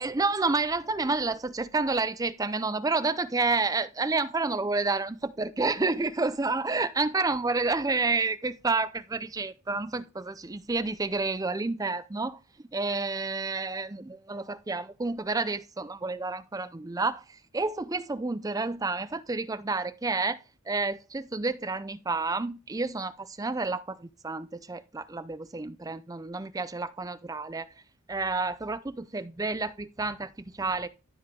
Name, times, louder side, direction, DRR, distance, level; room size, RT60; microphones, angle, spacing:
voice 1, 0.0-12.4 12.7-20.4 20.7-27.7 28.1-30.9, right 3 dB, 15° right, 0.4 m, -30 dB
12.5 x 4.8 x 3.8 m
head